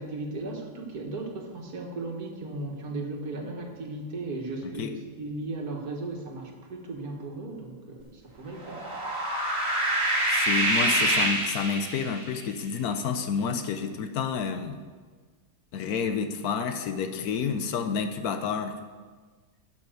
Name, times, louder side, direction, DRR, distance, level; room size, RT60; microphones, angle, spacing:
voice 1, 0.0-8.9, right 2 dB, 80° right, 1 dB, 2.1 m, -36 dB
sound 1, 8.6-12.3, right 1 dB, 45° right, 3.3 m, -26 dB
voice 2, 10.3-14.8 15.7-18.8, left 6 dB, 85° left, 7 dB, 1.3 m, -29 dB
12.0 x 5.8 x 7.7 m, 1.5 s
omnidirectional pair, 1.6 m